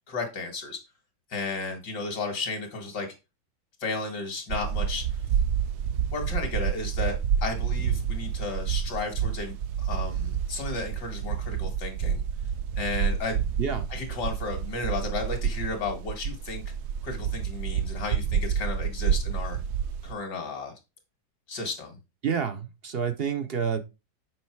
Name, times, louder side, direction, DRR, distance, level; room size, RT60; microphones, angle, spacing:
voice 1, 0.1-0.8 1.3-3.1 3.8-5.2 6.1-12.2 12.8-13.4 13.9-16.6 17.0-19.6 20.0-20.7 21.5-22.0, left 3 dB, 65° left, 3 dB, 2.4 m, -33 dB
sound 1, 4.5-20.1, right 8 dB, 65° right, 1.1 m, -29 dB
voice 2, 22.2-23.8, right 7 dB, 50° right, 9 dB, 0.7 m, -28 dB
7.9 x 5.4 x 4.6 m, 0.27 s
omnidirectional pair, 2.0 m